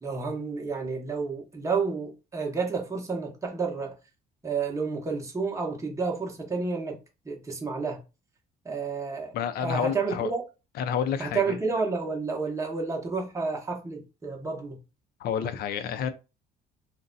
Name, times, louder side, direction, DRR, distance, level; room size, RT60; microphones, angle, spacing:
voice 1, 0.0-3.9 4.4-7.0 7.2-8.0 8.6-9.3 9.6-10.4 11.2-14.8, right 4 dB, 20° right, 0.9 m, -30 dB
voice 2, 9.3-10.3 10.8-11.6 15.2-16.1, left 8 dB, 65° left, 0.5 m, -29 dB
2.5 x 2.2 x 3.9 m
cardioid pair, 110°, 17 cm